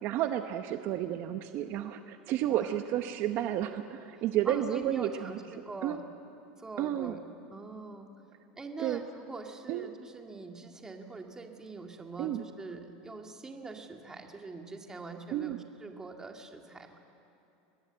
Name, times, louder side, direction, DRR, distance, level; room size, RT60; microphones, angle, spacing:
voice 1, 0.0-5.4 5.8-6.0 6.8-7.2 8.8-9.0 9.7-9.9 12.2-12.4 15.3-15.6, right 12 dB, 50° right, 8 dB, 0.9 m, -31 dB
voice 2, 4.5-6.0 6.6-7.2 7.5-8.1 8.6-17.0, right 3 dB, 10° right, 3 dB, 2.0 m, -43 dB
24.5 x 20.0 x 8.0 m, 2.9 s
supercardioid pair, 140°, 5 cm